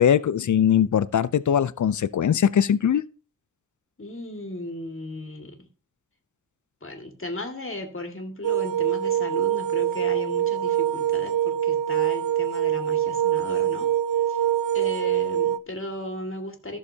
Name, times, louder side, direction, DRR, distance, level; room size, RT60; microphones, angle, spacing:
voice 1, 0.0-3.0, left 9 dB, 65° left, 0.5 m, -21 dB
voice 2, 4.0-5.7 6.8-13.9 14.3-14.5 14.7-16.8, left 1 dB, 40° left, 2.1 m, -36 dB
sound 1, 8.4-15.6, right 11 dB, 80° right, 0.6 m, -24 dB
15.0 x 6.5 x 2.8 m
wide cardioid pair, 90°, 32 cm